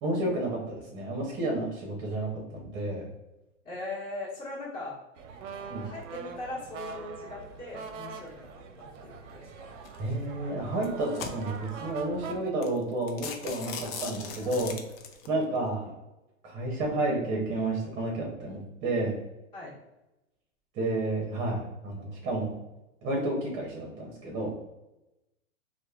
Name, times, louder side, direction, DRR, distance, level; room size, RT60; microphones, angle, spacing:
voice 1, 0.0-3.0 5.7-5.9 10.0-14.7 15.3-16.0 16.4-19.1 20.7-22.5 23.0-24.5, right 2 dB, 30° right, -2 dB, 0.7 m, -31 dB
voice 2, 3.6-5.0 5.8-9.8 14.0-14.1 14.4-14.5 19.5-19.7, left 2 dB, 20° left, -7 dB, 1.4 m, -40 dB
sound 1, 5.2-12.4, right 6 dB, 65° right, 0.5 m, -43 dB
sound 2, 9.8-10.1 10.7-11.7 12.3-12.4 12.6-12.8 13.1-15.3, left 6 dB, 50° left, 0.5 m, -39 dB
3.0 x 2.1 x 2.3 m, 0.95 s
hypercardioid pair, 125°, 40 cm